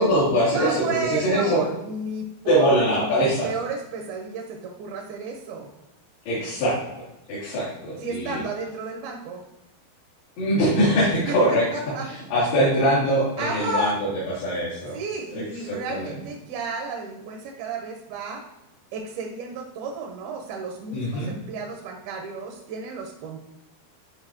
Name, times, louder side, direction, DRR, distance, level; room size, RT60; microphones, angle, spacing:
voice 1, 0.0-1.6 2.5-3.5 6.3-6.8 7.3-8.4 10.4-11.7 12.0-13.9 14.4-14.9 15.3-16.1 20.9-21.3, equal, 75° left, -13 dB, 5.0 m, -22 dB
voice 2, 0.5-5.7 8.0-9.4 11.3-12.1 13.4-14.0 14.9-18.4 18.9-23.4, right 3 dB, 75° right, 2 dB, 2.8 m, -32 dB
11.0 x 5.3 x 3.0 m, 0.90 s
omnidirectional pair, 4.5 m